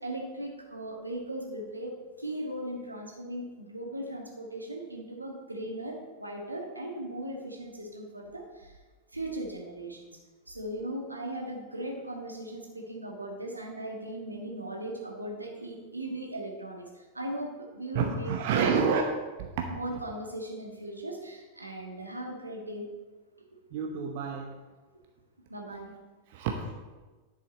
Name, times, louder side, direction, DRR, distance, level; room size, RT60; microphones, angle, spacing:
voice 1, 0.0-1.9 2.2-8.8 9.1-10.2 10.5-18.8 19.7-22.9 23.5-23.6 25.5-25.9, right 1 dB, 85° right, 1 dB, 1.6 m, -38 dB
voice 2, 17.9-19.0 19.4-19.5 23.7-24.6 26.3-26.8, right 6 dB, 50° right, 3 dB, 0.9 m, -28 dB
10.5 x 6.6 x 4.2 m, 1.3 s
figure-of-eight pair, 90°, 0 cm